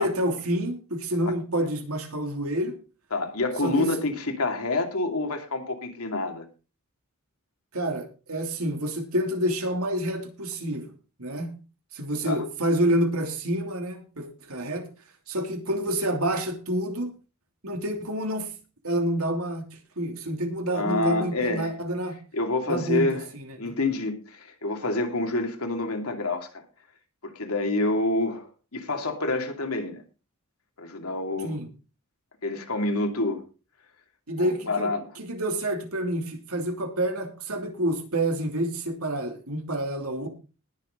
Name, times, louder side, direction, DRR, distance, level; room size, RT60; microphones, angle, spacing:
voice 1, 0.0-2.7 3.6-3.9 7.7-10.9 11.2-11.5 11.9-14.9 15.3-17.1 17.6-18.5 18.8-19.7 20.0-22.2 22.7-23.7 31.4-31.7 34.3-40.3, right 1 dB, 80° right, 3.0 m, -28 dB
voice 2, 3.1-6.5 12.2-12.4 20.7-21.8 22.3-23.3 23.6-26.6 27.2-30.0 30.8-31.6 32.4-33.4 34.4-35.1, left 2 dB, 85° left, 2.6 m, -28 dB
20.0 x 7.3 x 3.9 m
head